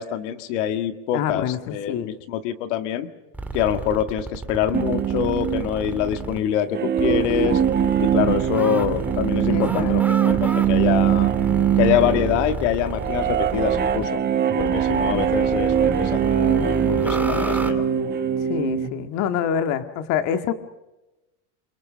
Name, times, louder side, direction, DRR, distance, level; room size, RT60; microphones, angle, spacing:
voice 1, 0.0-3.1 3.5-7.6 8.0-11.3 11.8-14.2 14.6-17.8, left 10 dB, 75° left, 9 dB, 1.9 m, -25 dB
voice 2, 1.1-2.1 9.5-10.0 18.5-20.5, left 8 dB, 50° left, 8 dB, 2.0 m, -26 dB
sound 1, 3.3-6.4 7.0-14.1 14.6-17.7, right 2 dB, 5° right, 2.3 m, -31 dB
sound 2, 4.7-18.9, right 9 dB, 25° right, 1.8 m, -22 dB
28.5 x 24.5 x 6.4 m, 1.0 s
supercardioid pair, 145°, 36 cm